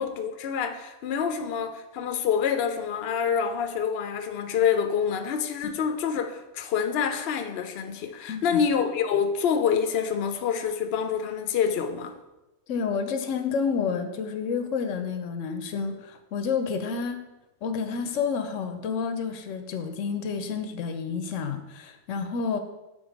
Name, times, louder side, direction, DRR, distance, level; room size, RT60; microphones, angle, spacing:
voice 1, 0.0-12.1, left 7 dB, 65° left, 0.8 m, -27 dB
voice 2, 12.7-17.2 17.6-22.6, left 6 dB, 85° left, 1.0 m, -29 dB
7.0 x 3.7 x 5.0 m
omnidirectional pair, 1.3 m